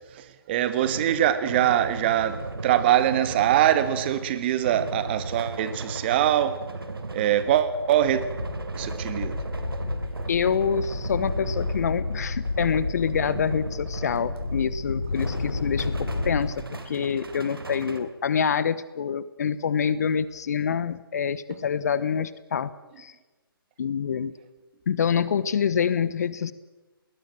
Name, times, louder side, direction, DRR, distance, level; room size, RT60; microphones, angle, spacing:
voice 1, 0.1-6.6 7.1-8.3 8.7-9.4, right 11 dB, 25° right, 1.4 m, -23 dB
sound 1, 0.6-14.8 15.1-18.0, right 3 dB, 70° right, 3.3 m, -36 dB
sound 2, 7.7-7.8 8.1-16.5, left 3 dB, 75° left, 3.4 m, -31 dB
voice 2, 10.3-22.7 23.0-23.1 23.8-24.3 24.9-26.5, left 7 dB, 45° left, 1.0 m, -26 dB
21.0 x 19.5 x 7.7 m
figure-of-eight pair, 145°, 13 cm